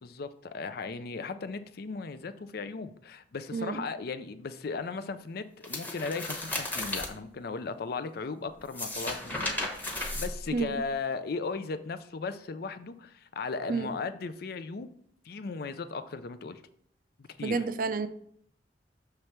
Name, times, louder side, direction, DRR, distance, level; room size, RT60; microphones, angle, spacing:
voice 1, 0.0-14.9 15.2-16.6 17.2-17.7, left 4 dB, 55° left, 11 dB, 0.5 m, -37 dB
sound 1, 5.6-7.1 8.6-10.9, left 2 dB, 10° left, 1.0 m, -34 dB
voice 2, 17.4-18.1, right 4 dB, 50° right, 11 dB, 0.5 m, -30 dB
6.8 x 3.3 x 5.9 m, 0.65 s
head